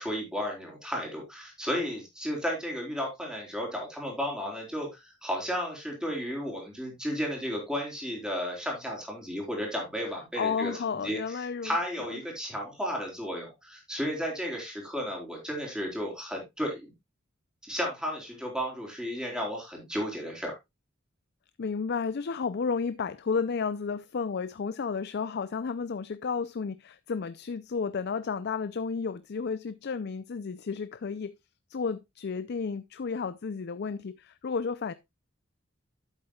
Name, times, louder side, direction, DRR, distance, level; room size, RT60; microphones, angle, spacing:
voice 1, 0.0-16.9 17.7-20.6, equal, 5° right, 4.1 m, -33 dB
voice 2, 10.4-11.8 21.6-31.3 31.7-34.9, left 5 dB, 55° left, 0.5 m, -32 dB
11.5 x 8.2 x 2.3 m
head